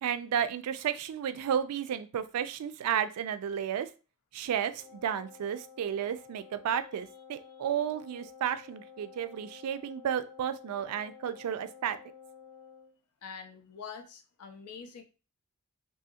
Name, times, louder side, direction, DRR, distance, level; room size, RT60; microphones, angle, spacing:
voice 1, 0.0-3.9 4.3-12.0, right 8 dB, 90° right, 12 dB, 0.3 m, -32 dB
Wind instrument woodwind instrument, 4.7-13.0, left 7 dB, 20° left, 0.4 m, -52 dB
voice 2, 13.2-15.0, left 6 dB, 80° left, 5 dB, 0.6 m, -45 dB
2.8 x 2.7 x 2.3 m, 0.33 s
head